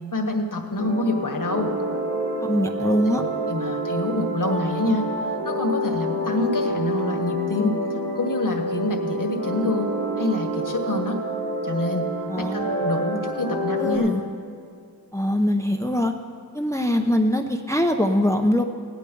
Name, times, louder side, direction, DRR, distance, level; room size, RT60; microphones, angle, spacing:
voice 1, 0.1-1.7 3.1-7.8 8.1-11.2 11.6-12.1 12.4-14.1, left 2 dB, 55° left, 3 dB, 1.7 m, -26 dB
sound 1, 0.8-14.0, right 1 dB, 70° right, 2.7 m, -28 dB
voice 2, 2.4-3.2 12.3-12.7 13.8-14.2 15.1-16.1 16.5-18.6, left 1 dB, 10° left, 4 dB, 0.7 m, -22 dB
16.0 x 10.5 x 5.4 m, 2.2 s
cardioid pair, 40°, 38 cm